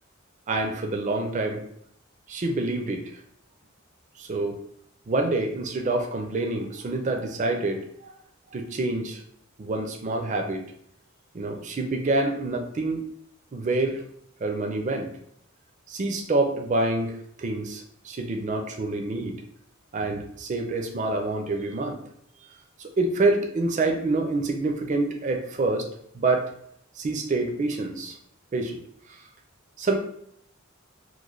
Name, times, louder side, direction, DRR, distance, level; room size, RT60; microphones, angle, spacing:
voice 1, 0.5-1.6 2.3-3.2 4.2-4.6 5.1-8.1 8.5-9.2 9.6-10.6 11.3-13.0 13.5-14.0 14.4-15.1 15.9-19.4 19.9-22.0 22.8-25.9 26.1-26.4 27.0-28.2 28.5-28.8 29.8-30.0, right 2 dB, 35° right, 3 dB, 0.4 m, -27 dB
3.1 x 2.1 x 3.7 m, 0.70 s
head